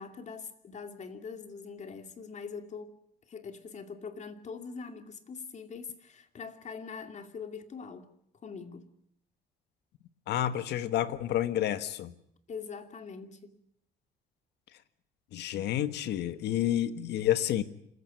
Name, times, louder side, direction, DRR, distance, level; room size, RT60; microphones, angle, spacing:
voice 1, 0.0-2.9 3.3-8.1 8.4-8.9 12.5-13.5, left 5 dB, 40° left, 2.5 m, -43 dB
voice 2, 10.3-12.1 15.3-17.6, left 12 dB, 75° left, 1.4 m, -29 dB
26.5 x 15.0 x 9.4 m
cardioid pair, 105°, 18 cm